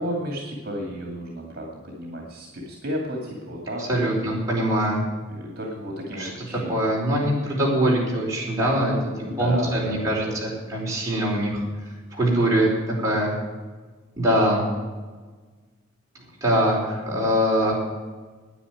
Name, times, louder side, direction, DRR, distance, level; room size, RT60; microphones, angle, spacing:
voice 1, 0.0-4.0 5.3-6.8 9.2-10.3, equal, 50° right, 0 dB, 2.5 m, -32 dB
voice 2, 3.9-5.0 6.2-6.3 6.7-11.6 12.1-12.7 13.0-13.3 14.2-14.6 16.4-17.7, right 1 dB, 15° right, -5 dB, 4.5 m, -23 dB
10.0 x 9.6 x 9.3 m, 1.4 s
head